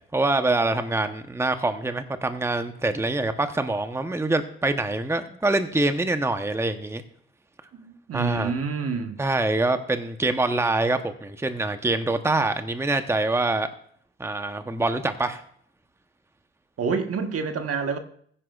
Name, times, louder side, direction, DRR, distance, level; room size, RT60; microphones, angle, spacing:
voice 1, 0.1-7.0 8.1-8.5 9.2-13.7 14.2-15.4, right 2 dB, 10° right, 0.9 m, -25 dB
voice 2, 7.7-9.2 16.8-18.0, right 5 dB, 50° right, 1.4 m, -28 dB
15.5 x 9.9 x 2.4 m
hypercardioid pair, 55°, 30 cm